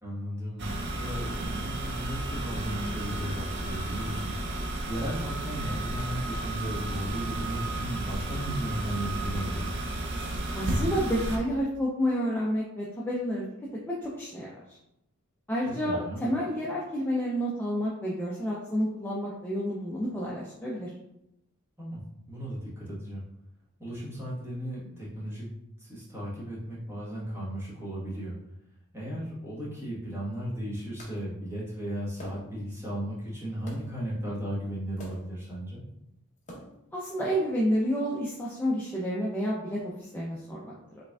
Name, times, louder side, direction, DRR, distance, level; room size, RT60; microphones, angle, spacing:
voice 1, 0.0-4.4 4.9-9.8 15.6-16.2 21.8-22.0 22.3-23.2 23.8-25.5 25.8-28.4 28.9-35.8, equal, 10° right, -7 dB, 1.3 m, -35 dB
sound 1, 0.6-11.4, right 1 dB, 50° right, 0.5 m, -33 dB
voice 2, 10.5-13.5 13.9-14.5 15.5-20.9 36.9-40.7, equal, 10° left, -5 dB, 0.4 m, -30 dB
sound 2, 31.0-31.2 32.2-32.7 33.7-34.0 35.0-35.4 36.4-36.9, equal, 35° left, 0.9 m, -46 dB
4.8 x 3.2 x 2.3 m, 0.84 s
head